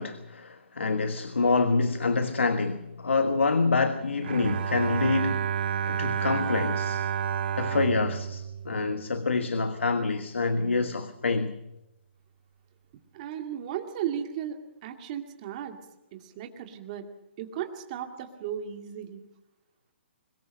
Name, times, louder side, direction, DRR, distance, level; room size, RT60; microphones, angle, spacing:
voice 1, 0.0-5.4 5.9-7.0 7.6-11.6, left 4 dB, 85° left, 1.3 m, -26 dB
Bowed string instrument, 4.2-9.5, right 8 dB, 55° right, 0.9 m, -30 dB
voice 2, 13.1-15.8 16.1-17.1 17.4-19.2, right 9 dB, 40° right, 2.3 m, -35 dB
23.0 x 20.0 x 6.5 m
hypercardioid pair, 140°, 6 cm